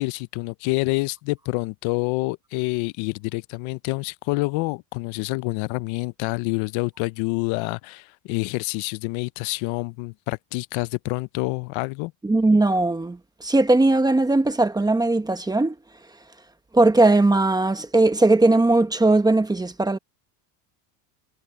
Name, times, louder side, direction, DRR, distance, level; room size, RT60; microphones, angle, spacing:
voice 1, 0.0-12.1, left 24 dB, 75° left, 0.7 m, -27 dB
voice 2, 12.2-15.8 16.7-20.0, right 2 dB, 10° right, 0.9 m, -19 dB
cardioid pair, 150°, 47 cm